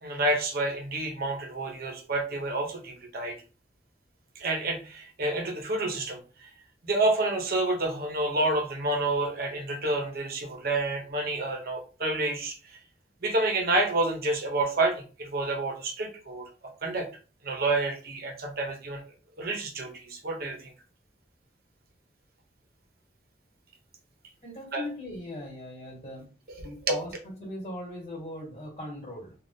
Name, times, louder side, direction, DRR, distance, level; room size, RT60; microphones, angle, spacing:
voice 1, 0.0-3.4 4.4-6.2 6.8-12.5 13.2-16.5 16.8-17.1 17.4-19.0 19.4-20.7 24.7-24.8 26.5-27.0, right 2 dB, 55° right, 3 dB, 0.8 m, -29 dB
voice 2, 24.4-26.3 26.6-29.3, left 1 dB, 35° left, -2 dB, 1.6 m, -39 dB
3.4 x 2.4 x 2.7 m, 0.37 s
head